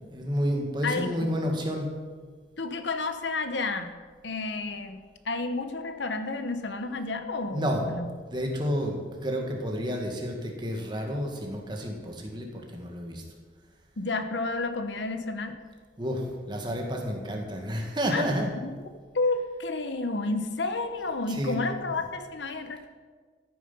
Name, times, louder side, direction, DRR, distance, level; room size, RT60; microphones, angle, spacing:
voice 1, 0.1-1.9 7.4-7.9 8.3-13.2 16.0-18.5 21.3-21.6 21.9-22.1, equal, 25° right, 1 dB, 1.9 m, -30 dB
voice 2, 0.8-1.3 2.6-3.9 4.2-8.1 14.0-15.6 18.1-18.2 18.6-18.7 19.1-22.9, left 3 dB, 75° left, 8 dB, 1.0 m, -31 dB
14.5 x 9.2 x 5.7 m, 1.5 s
head